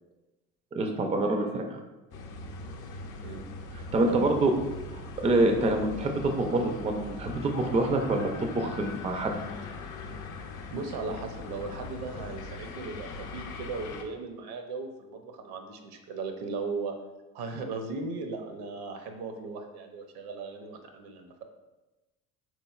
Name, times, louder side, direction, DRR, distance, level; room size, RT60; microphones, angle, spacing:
voice 1, 0.7-1.6 3.7-4.5 4.9-9.3, right 2 dB, 15° right, 4 dB, 0.3 m, -26 dB
sound 1, 2.1-14.0, left 3 dB, 50° left, 0.5 m, -40 dB
voice 2, 10.7-16.9 17.3-21.4, right 4 dB, 65° right, 5 dB, 0.6 m, -37 dB
3.9 x 3.1 x 2.3 m, 1.1 s
hypercardioid pair, 60°, 42 cm